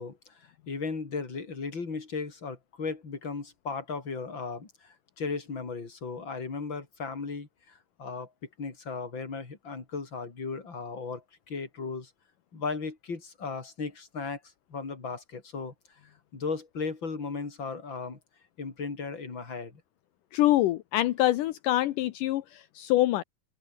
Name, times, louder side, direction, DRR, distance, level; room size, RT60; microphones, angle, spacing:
voice 1, 0.0-8.3 8.6-12.1 12.5-14.4 14.7-15.7 16.3-18.2 18.6-19.8, left 4 dB, 35° left, 4.7 m, -36 dB
voice 2, 20.3-23.2, left 15 dB, 75° left, 2.5 m, -25 dB
open air
omnidirectional pair, 3.8 m